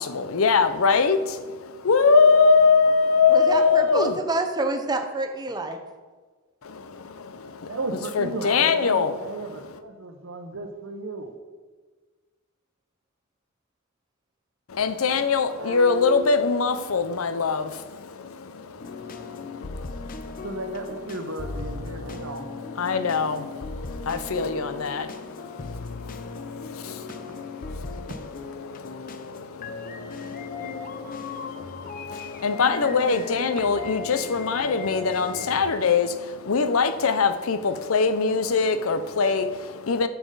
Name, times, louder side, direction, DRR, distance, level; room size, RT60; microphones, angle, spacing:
voice 1, 0.0-4.2 6.6-7.8 8.1-9.2 9.5-9.6 14.7-20.5 21.9-28.1 28.6-40.1, left 5 dB, 80° left, 0.6 m, -24 dB
voice 2, 3.3-5.8, right 2 dB, 20° right, 0.7 m, -27 dB
voice 3, 7.7-11.3 15.5-16.3 20.3-22.5 27.2-27.4 28.0-28.1 33.4-33.8, right 2 dB, 75° right, 1.0 m, -35 dB
sound 1, 18.8-35.7, left 4 dB, 40° left, 0.6 m, -37 dB
10.0 x 7.1 x 4.0 m
head